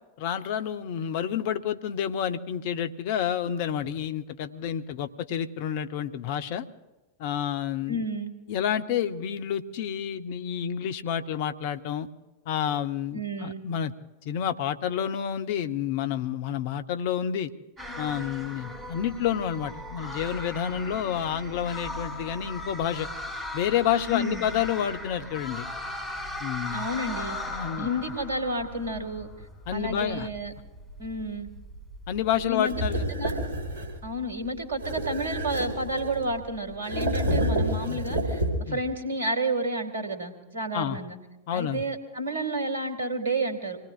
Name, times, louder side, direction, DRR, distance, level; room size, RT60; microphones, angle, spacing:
voice 1, 0.2-6.7 7.2-8.0 8.5-12.1 12.5-13.9 14.2-17.5 18.0-23.1 23.5-25.7 26.4-26.9 27.5-27.9 29.7-30.3 32.1-33.1 37.9-38.0 38.6-38.8 40.7-41.0 41.5-41.8, left 9 dB, 50° left, 9 dB, 0.8 m, -29 dB
voice 2, 7.9-8.3 13.1-13.6 24.1-24.5 26.7-29.3 29.7-30.5 31.0-31.5 32.5-32.8 33.1-33.3 34.0-41.2 41.5-43.8, right 1 dB, 70° right, 8 dB, 2.2 m, -31 dB
sound 1, 17.8-36.8, left 1 dB, 10° right, 5.4 m, -39 dB
sound 2, 32.7-34.0 34.8-36.3 36.8-38.8, right 1 dB, 80° left, 4.4 m, -29 dB
26.5 x 19.0 x 2.5 m, 1.1 s
figure-of-eight pair, 90°, 0 cm